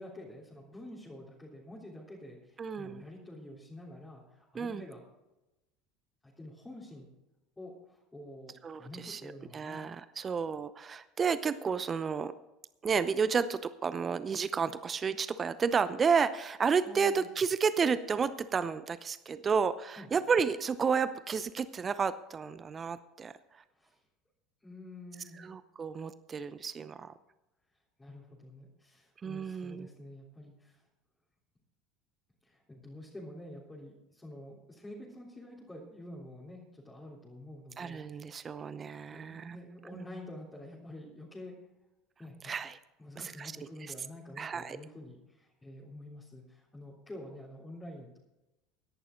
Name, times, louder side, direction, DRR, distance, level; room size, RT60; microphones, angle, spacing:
voice 1, 0.0-5.0 6.2-7.1 7.6-9.8 16.8-17.3 20.0-20.1 23.8-24.0 24.6-25.4 28.0-30.8 32.4-38.2 39.1-41.5 42.2-42.5 43.0-48.2, left 1 dB, 15° left, -6 dB, 3.5 m, -48 dB
voice 2, 2.6-3.0 4.5-4.8 8.6-12.3 12.8-23.6 25.4-27.1 29.2-29.9 37.8-39.6 39.9-40.0 42.4-42.8 43.2-43.5 44.4-44.8, right 6 dB, 30° right, 14 dB, 0.7 m, -31 dB
17.0 x 11.0 x 3.9 m, 0.98 s
figure-of-eight pair, 70°, 0 cm